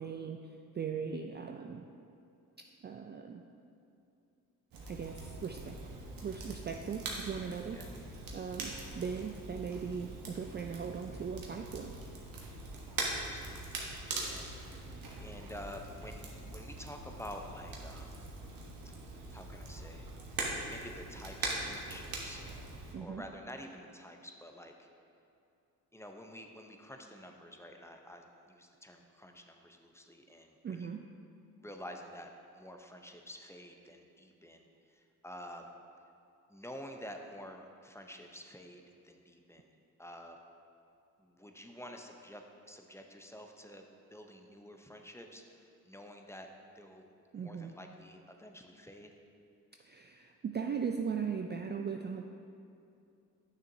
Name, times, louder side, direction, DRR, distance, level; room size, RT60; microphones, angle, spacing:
voice 1, 0.0-1.9 2.8-3.4 4.9-5.8 6.2-7.8 8.3-11.9 22.9-23.2 30.6-31.0 47.3-47.7 49.8-52.2, right 6 dB, 30° right, 4 dB, 0.4 m, -39 dB
Crackle, 4.7-22.9, right 2 dB, 65° right, 1.3 m, -42 dB
voice 2, 13.1-13.9 14.2-18.4 19.3-20.1 20.7-22.4 23.0-24.9 25.9-30.9 31.6-35.7 36.5-39.7 40.0-40.4 41.2-43.8 44.1-46.5 46.7-47.0 47.4-49.1, equal, 5° left, 3 dB, 0.7 m, -49 dB
9.1 x 6.3 x 2.7 m, 2.6 s
supercardioid pair, 55°, 37 cm